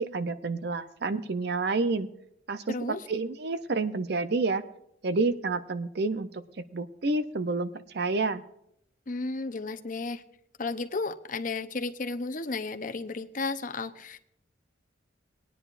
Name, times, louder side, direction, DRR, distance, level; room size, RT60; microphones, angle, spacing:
voice 1, 0.0-2.1 2.5-4.6 5.0-6.4 6.7-8.4, right 3 dB, 60° right, 12 dB, 0.6 m, -29 dB
voice 2, 2.7-3.1 9.1-10.2 10.6-14.2, left 3 dB, 45° left, 8 dB, 0.8 m, -33 dB
20.0 x 10.0 x 2.5 m, 0.74 s
head